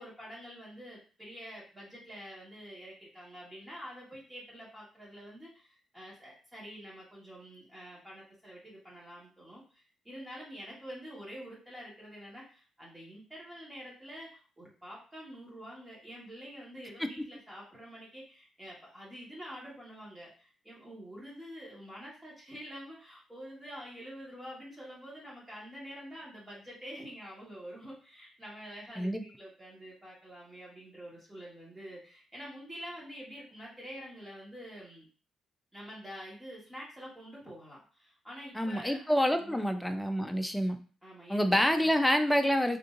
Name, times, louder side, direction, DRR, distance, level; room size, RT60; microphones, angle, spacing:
voice 1, 0.0-35.1 35.7-39.8 41.0-41.9, equal, 15° right, -6 dB, 1.5 m, -47 dB
voice 2, 38.5-40.8 41.3-42.8, equal, 5° left, 7 dB, 0.5 m, -27 dB
3.5 x 2.7 x 2.5 m, 0.39 s
cardioid pair, 90°, 0 cm